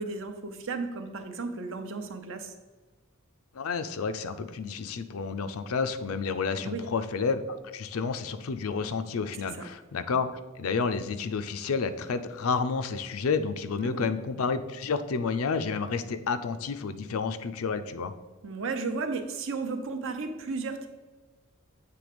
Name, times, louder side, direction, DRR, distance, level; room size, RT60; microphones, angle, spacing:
voice 1, 0.0-2.5 6.6-6.9 9.5-9.6 13.8-14.1 18.4-20.9, right 4 dB, 60° right, 6 dB, 0.7 m, -34 dB
voice 2, 3.5-18.1, left 5 dB, 75° left, 10 dB, 0.5 m, -30 dB
7.8 x 3.3 x 5.1 m, 1.2 s
head